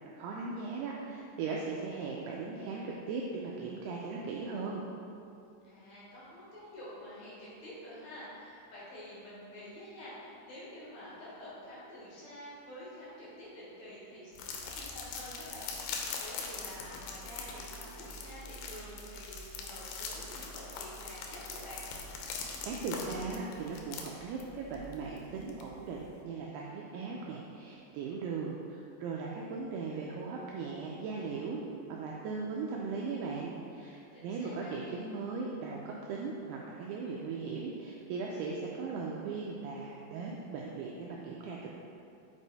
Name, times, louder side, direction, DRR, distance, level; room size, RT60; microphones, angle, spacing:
voice 1, 0.1-4.8 22.6-31.6 31.9-41.7, right 4 dB, 80° right, -2 dB, 2.3 m, -38 dB
voice 2, 5.6-21.9 34.1-34.7, left 1 dB, 55° left, -8 dB, 2.2 m, -48 dB
sound 1, 14.4-26.1, left 4 dB, 85° left, 3.0 m, -42 dB
7.3 x 5.3 x 4.0 m, 2.6 s
omnidirectional pair, 5.0 m